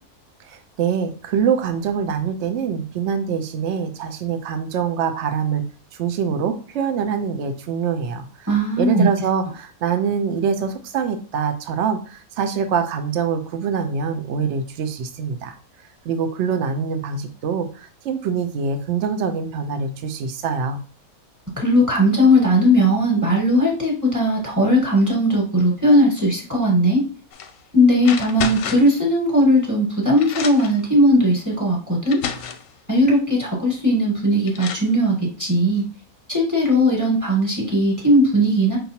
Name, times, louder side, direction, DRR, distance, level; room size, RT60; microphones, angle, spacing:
voice 1, 0.5-5.7 6.0-8.3 8.8-15.5 16.0-20.8, right 6 dB, 60° right, 7 dB, 0.8 m, -24 dB
voice 2, 8.5-9.1 21.6-27.0 27.7-32.2 32.9-35.8 36.3-38.8, equal, 15° right, -4 dB, 1.4 m, -18 dB
sound 1, 27.3-27.5 28.0-29.0 29.8-29.9 30.2-30.8 31.6-31.7 32.1-32.7 34.0-34.1 34.5-34.9, left 7 dB, 70° left, 0.9 m, -30 dB
5.3 x 2.6 x 2.8 m, 0.39 s
omnidirectional pair, 1.6 m